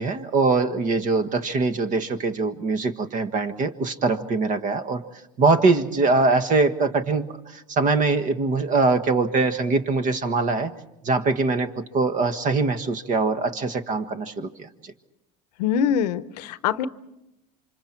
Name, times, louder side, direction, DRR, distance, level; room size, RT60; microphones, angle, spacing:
voice 1, 0.0-5.0 5.4-7.3 7.5-10.7 11.0-11.7 11.9-14.7, right 3 dB, 40° right, 10 dB, 1.6 m, -22 dB
voice 2, 15.6-16.9, left 8 dB, 85° left, 15 dB, 0.8 m, -23 dB
28.0 x 25.5 x 4.5 m, 0.90 s
supercardioid pair, 110°, 20 cm